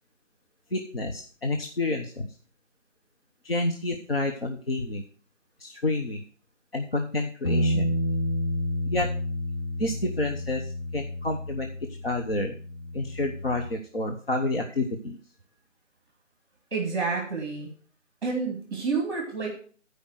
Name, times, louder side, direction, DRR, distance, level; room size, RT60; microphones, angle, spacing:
voice 1, 0.7-2.3 3.4-5.0 5.6-6.2 6.7-7.9 8.9-9.1 9.8-11.7 12.0-12.5 12.9-15.2, left 2 dB, 45° left, 2 dB, 1.1 m, -29 dB
Bass guitar, 7.4-13.7, equal, 85° left, 2.7 m, -30 dB
voice 2, 16.7-17.7 18.2-19.5, right 4 dB, 20° right, -1 dB, 2.6 m, -29 dB
13.0 x 5.2 x 6.5 m, 0.43 s
figure-of-eight pair, 165°, 39 cm